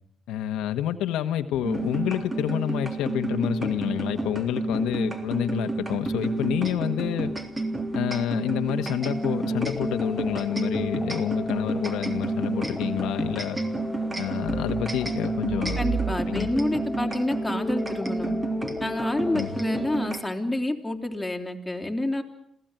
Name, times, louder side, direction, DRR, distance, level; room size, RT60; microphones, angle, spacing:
voice 1, 0.3-7.3 7.9-13.6 14.1-15.8 16.1-16.5 19.3-19.6, left 11 dB, 90° left, 7 dB, 1.3 m, -28 dB
sound 1, 1.6-20.2, right 2 dB, 20° right, 3.3 m, -30 dB
sound 2, 9.0-20.1, left 3 dB, 20° left, 1.6 m, -39 dB
voice 2, 15.8-18.4 18.8-22.2, left 1 dB, 5° left, 2 dB, 3.6 m, -28 dB
27.0 x 17.0 x 9.2 m, 0.74 s
cardioid pair, 90°, 0 cm